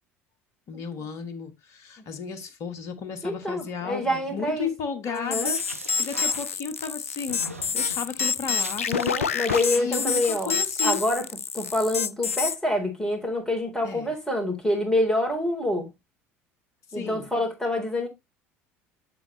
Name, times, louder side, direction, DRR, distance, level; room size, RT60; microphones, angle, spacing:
voice 1, 0.7-5.6 6.0-7.4 7.7-8.9 9.8-11.0 13.8-14.1 16.9-17.3, left 6 dB, 45° left, 1.4 m, -34 dB
voice 2, 3.2-4.7 5.1-5.5 8.9-10.5 10.8-11.3 11.5-15.9 16.9-18.1, left 1 dB, 5° left, 3.7 m, -26 dB
sound 1, 5.2-6.9 7.3-8.1 8.6-9.2 9.5-10.3, right 2 dB, 90° right, 0.8 m, -41 dB
sound 2, 5.3-12.6, left 6 dB, 80° left, 0.4 m, -27 dB
7.8 x 6.8 x 3.1 m
figure-of-eight pair, 65°, 7 cm